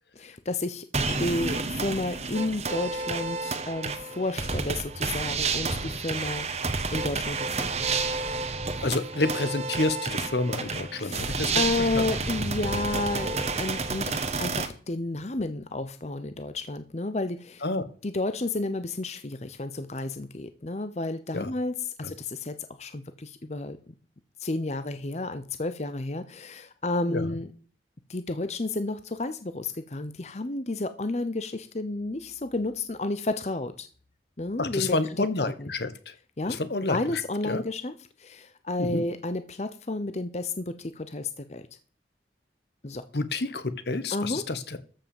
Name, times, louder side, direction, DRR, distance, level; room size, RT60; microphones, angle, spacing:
voice 1, 0.1-0.9 1.2-8.0 11.0-17.6 18.0-23.9 24.4-27.5 28.1-33.9 34.4-35.7 36.4-36.6 36.9-41.6 42.8-43.0 44.1-44.4, left 2 dB, 40° left, 10 dB, 0.8 m, -31 dB
sound 1, 0.9-14.7, right 4 dB, 35° right, 1.3 m, -30 dB
voice 2, 8.8-12.1 17.6-17.8 21.3-21.5 22.0-22.1 27.1-27.3 34.6-36.1 36.5-37.2 37.5-37.6 38.8-39.0 43.1-44.8, left 2 dB, 70° left, 13 dB, 1.2 m, -29 dB
13.5 x 6.0 x 7.1 m, 0.42 s
head